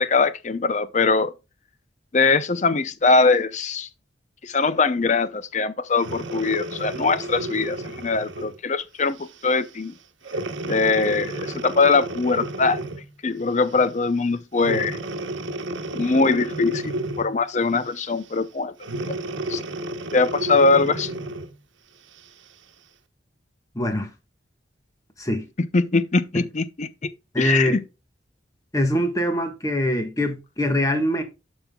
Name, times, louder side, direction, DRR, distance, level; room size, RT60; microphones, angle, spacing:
voice 1, 0.0-1.3 2.1-3.9 4.4-9.9 10.7-12.8 13.2-15.0 15.9-18.7 19.5-19.6 20.1-21.1 25.6-27.1 27.4-27.7, left 4 dB, 40° left, 0.6 m, -22 dB
Breathing, 5.9-8.6 9.2-9.4 10.2-13.1 14.6-17.4 18.8-21.5 22.2-22.3, right 1 dB, 90° right, 1.1 m, -32 dB
voice 2, 23.7-24.1 25.2-25.4 27.3-27.8 28.7-31.2, left 1 dB, 20° left, 1.4 m, -23 dB
11.5 x 5.4 x 2.3 m
head